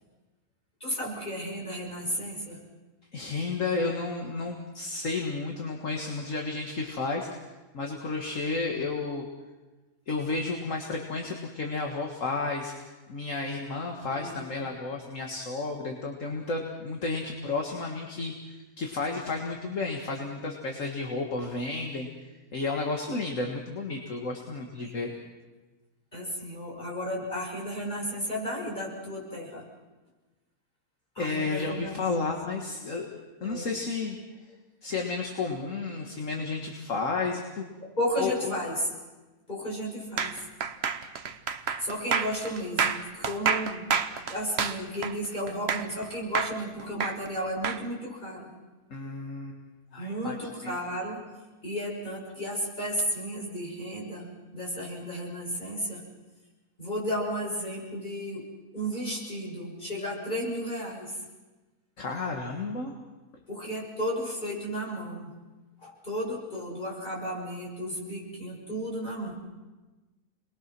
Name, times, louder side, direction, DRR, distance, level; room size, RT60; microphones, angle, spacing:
voice 1, 0.8-2.6 14.1-14.4 24.8-24.9 26.1-29.6 31.1-32.3 33.4-33.7 37.8-38.9 39.5-40.4 41.8-44.0 44.3-48.5 50.0-51.3 51.6-56.0 56.8-58.4 58.7-61.2 63.5-65.3 65.8-69.3, equal, 30° left, -4 dB, 6.7 m, -33 dB
voice 2, 3.1-7.4 7.7-9.2 10.1-12.7 13.1-22.1 22.5-25.1 31.2-33.1 33.4-34.2 34.8-37.7 38.2-38.5 48.9-49.6 49.9-50.4 50.6-50.8 62.0-63.0, left 3 dB, 55° left, 1 dB, 2.1 m, -32 dB
sound 1, 40.2-46.0 46.3-47.8, right 6 dB, 50° right, 1.1 m, -29 dB
30.0 x 21.0 x 6.1 m, 1.2 s
omnidirectional pair, 1.6 m